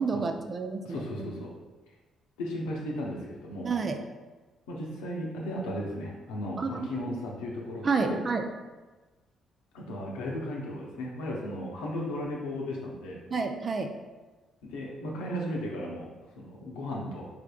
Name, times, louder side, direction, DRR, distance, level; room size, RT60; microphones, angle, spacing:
voice 1, 0.0-1.3 3.6-4.0 6.6-7.2 7.8-8.5 13.3-13.9, right 4 dB, 45° right, 5 dB, 0.4 m, -30 dB
voice 2, 0.8-1.5 2.4-3.7 4.7-8.2 9.7-13.2 14.6-17.3, left 1 dB, 85° left, -2 dB, 0.6 m, -35 dB
3.6 x 3.4 x 2.2 m, 1.2 s
hypercardioid pair, 55°, 0 cm